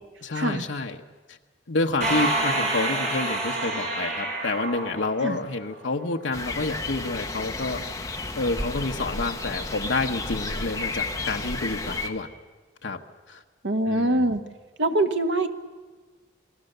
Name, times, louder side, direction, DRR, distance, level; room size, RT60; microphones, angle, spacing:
voice 1, 0.2-1.0 1.3-1.4 1.7-7.8 8.3-12.3 12.8-13.0 13.3-13.4 13.9-14.2, left 2 dB, 75° left, 3 dB, 1.1 m, -29 dB
sound 1, 2.0-5.7, right 1 dB, 35° right, 6.3 m, -27 dB
sound 2, 6.3-12.1, left 3 dB, 15° left, 1.3 m, -32 dB
voice 2, 13.6-14.4 14.8-15.5, right 1 dB, 75° right, 6 dB, 1.5 m, -23 dB
28.0 x 20.5 x 6.8 m, 1.3 s
head